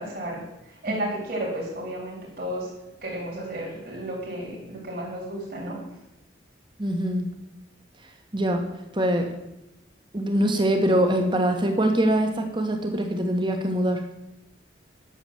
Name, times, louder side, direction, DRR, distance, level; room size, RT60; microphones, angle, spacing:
voice 1, 0.0-2.7 3.0-5.8, right 1 dB, 45° right, -4 dB, 3.2 m, -33 dB
voice 2, 6.8-7.3 8.3-8.7 8.9-9.3 10.1-14.0, right 1 dB, 25° right, 4 dB, 1.5 m, -23 dB
11.0 x 7.1 x 7.2 m, 0.90 s
head